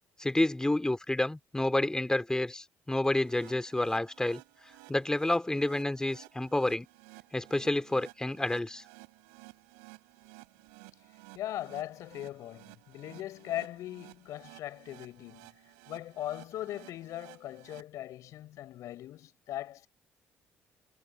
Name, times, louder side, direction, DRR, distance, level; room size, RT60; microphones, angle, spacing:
voice 1, 0.2-4.4 4.9-6.9 7.3-8.8, left 1 dB, 10° left, 2.6 m, -29 dB
sound 1, 3.0-17.8, right 35 dB, 85° right, 7.5 m, -55 dB
voice 2, 11.3-15.5 15.9-19.9, left 13 dB, 70° left, 6.1 m, -39 dB
hypercardioid pair, 60°, 6 cm